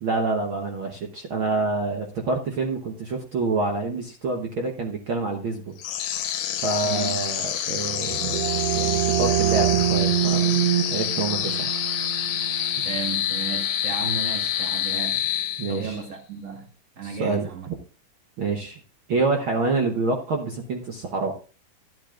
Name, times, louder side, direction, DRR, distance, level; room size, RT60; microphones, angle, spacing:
voice 1, 0.0-5.8 6.6-11.7 15.6-16.0 17.0-17.8 18.4-18.8 19.1-21.3, right 3 dB, 70° right, 1.2 m, -27 dB
sound 1, 5.8-16.0, left 10 dB, 90° left, 2.6 m, -27 dB
voice 2, 6.8-7.2 12.8-15.2 15.7-16.7 17.0-17.7, right 6 dB, 40° right, 1.0 m, -34 dB
sound 2, 7.8-13.3, right 12 dB, 85° right, 1.5 m, -25 dB
11.5 x 11.0 x 2.4 m
omnidirectional pair, 3.7 m